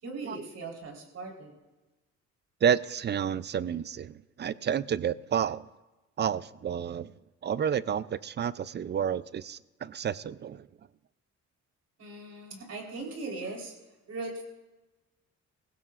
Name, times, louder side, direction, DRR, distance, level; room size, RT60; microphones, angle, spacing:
voice 1, 0.0-1.6 12.0-13.7 14.1-14.4, right 3 dB, 55° right, 0 dB, 3.8 m, -39 dB
voice 2, 2.6-5.7 6.2-7.1 7.4-10.7, right 8 dB, 35° right, 18 dB, 0.4 m, -30 dB
19.0 x 16.0 x 2.4 m, 1.1 s
cardioid pair, 90°, 30 cm